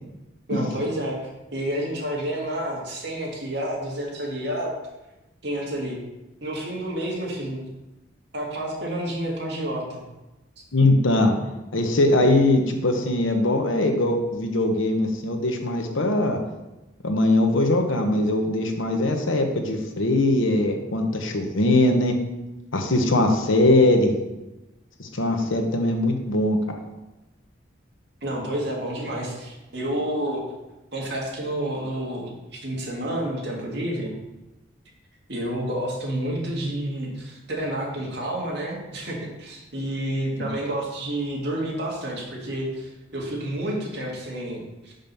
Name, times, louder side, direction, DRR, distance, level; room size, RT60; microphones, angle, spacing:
voice 1, 0.5-4.7 5.4-6.0 6.4-7.7 8.3-10.0 28.2-30.4 30.9-34.1 35.3-44.9, right 1 dB, 55° right, -3 dB, 2.0 m, -29 dB
voice 2, 10.7-11.4 11.7-16.4 17.0-22.2 22.7-24.1 25.0-26.6 40.4-40.5, left 1 dB, 85° left, 4 dB, 1.0 m, -21 dB
5.9 x 5.3 x 5.3 m, 1.0 s
head